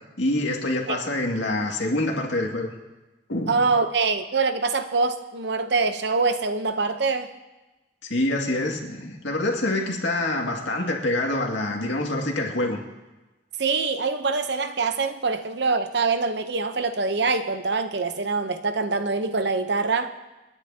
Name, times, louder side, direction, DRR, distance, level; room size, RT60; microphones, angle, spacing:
voice 1, 0.2-2.7 3.3-3.8 8.0-12.8, left 1 dB, 75° left, 0 dB, 2.2 m, -26 dB
voice 2, 3.5-7.3 13.6-20.2, right 4 dB, 65° right, 9 dB, 0.8 m, -24 dB
29.0 x 9.9 x 2.9 m, 1.1 s
head